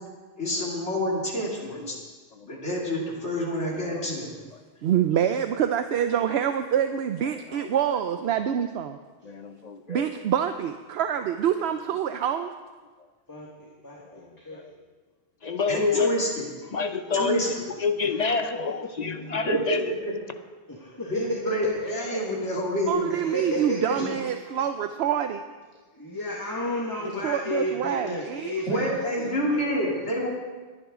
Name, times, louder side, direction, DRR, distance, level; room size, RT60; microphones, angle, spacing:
voice 1, 0.4-1.9 2.4-4.3 15.7-16.5 17.1-17.5 19.4-20.1 21.1-24.1 28.7-30.3, equal, 90° left, -3 dB, 3.2 m, -28 dB
voice 2, 1.7-2.0 2.3-2.5 3.8-4.1 4.9-5.0 7.3-7.7 9.2-10.1 14.0-14.7 15.4-16.2 16.7-19.9 27.1-27.3, left 4 dB, 40° left, 8 dB, 0.8 m, -29 dB
voice 3, 4.8-9.0 9.9-12.5 22.9-25.4 27.2-28.5, right 9 dB, 75° right, 8 dB, 0.8 m, -26 dB
voice 4, 13.3-14.6 17.0-17.3 18.0-18.2 20.7-22.2 23.1-24.2 24.4-24.5 25.9-30.0, left 1 dB, 20° left, -3 dB, 1.6 m, -33 dB
23.0 x 10.0 x 3.7 m, 1.4 s
omnidirectional pair, 1.1 m